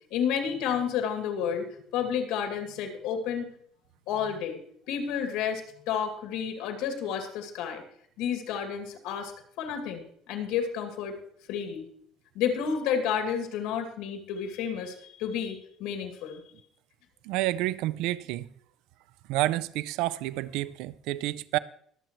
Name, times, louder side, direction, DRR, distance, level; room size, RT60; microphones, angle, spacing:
voice 1, 0.1-1.7 1.9-3.5 4.1-4.6 4.9-7.8 8.2-9.3 9.6-11.2 11.5-11.9 12.3-16.4, left 7 dB, 85° left, 2.3 m, -31 dB
voice 2, 17.2-18.5 19.3-21.6, right 16 dB, 80° right, 0.4 m, -29 dB
22.5 x 7.7 x 3.1 m
cardioid pair, 165°, 0 cm